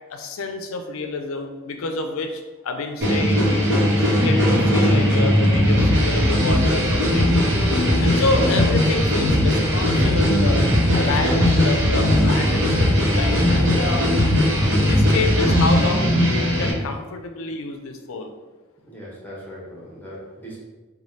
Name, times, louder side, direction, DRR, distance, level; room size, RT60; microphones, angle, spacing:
voice 1, 0.1-7.3 7.9-10.6 10.9-14.0 14.8-18.3, left 3 dB, 70° left, 5 dB, 0.4 m, -28 dB
sound 1, 3.0-16.7, equal, 60° right, 1.0 m, -18 dB
voice 2, 18.9-20.6, equal, 10° left, -5 dB, 0.9 m, -39 dB
3.1 x 2.2 x 4.1 m, 1.2 s
head